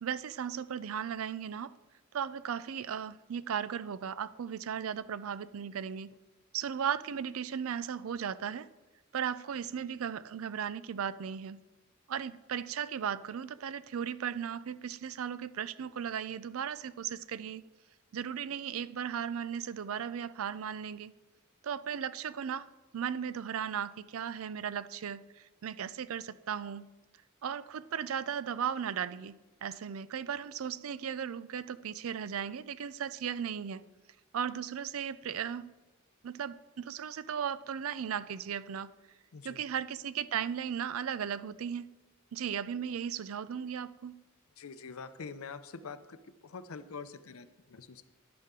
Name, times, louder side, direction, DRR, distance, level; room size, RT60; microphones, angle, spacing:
voice 1, 0.0-1.7 2.1-6.2 6.5-8.7 9.1-11.6 12.1-17.6 18.1-21.1 21.6-22.7 22.9-26.9 27.4-33.9 34.3-35.7 36.2-38.9 39.4-41.9 42.3-44.2, right 8 dB, 75° right, 16 dB, 0.4 m, -36 dB
voice 2, 39.3-39.6 44.6-48.1, left 5 dB, 85° left, 12 dB, 0.6 m, -45 dB
11.0 x 10.5 x 3.7 m, 1.2 s
head